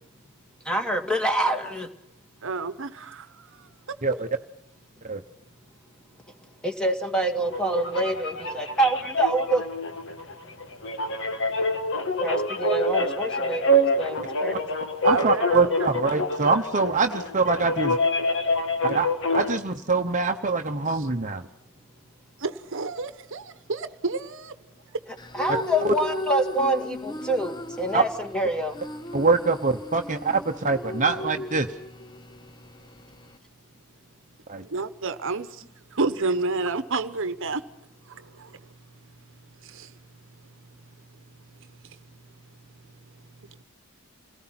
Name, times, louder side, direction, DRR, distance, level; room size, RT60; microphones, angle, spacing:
voice 1, 0.6-1.9 4.1-4.2 6.6-9.7 12.2-14.8 25.1-28.8, right 1 dB, 5° left, 2.2 m, -26 dB
voice 2, 2.4-3.3 15.0-15.9 22.4-24.5 34.7-35.6 35.9-37.6 38.1-38.5 39.6-39.9, right 3 dB, 65° right, 1.1 m, -29 dB
sound 1, 7.4-19.5, left 1 dB, 65° left, 2.1 m, -26 dB
voice 3, 15.0-18.0 18.8-21.4 25.8-25.9 27.9-28.0 29.1-31.7 34.5-34.6, right 4 dB, 35° right, 1.0 m, -24 dB
sound 2, 25.2-33.4, left 1 dB, 20° left, 0.9 m, -37 dB
28.5 x 18.5 x 5.9 m
head